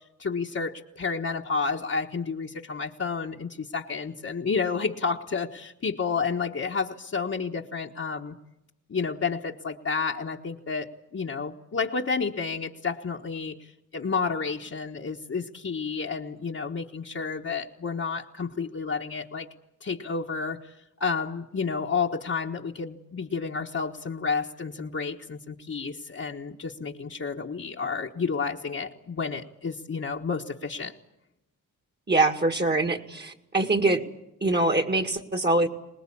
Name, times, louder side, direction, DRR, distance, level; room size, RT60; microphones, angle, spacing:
voice 1, 0.2-8.3 8.9-13.6 13.9-19.5 19.8-20.7 21.0-30.9, left 5 dB, 45° left, -2 dB, 1.4 m, -30 dB
voice 2, 32.1-34.0 34.4-35.7, right 2 dB, 30° right, 7 dB, 2.1 m, -24 dB
24.5 x 20.0 x 8.7 m, 0.87 s
wide cardioid pair, 95°, 32 cm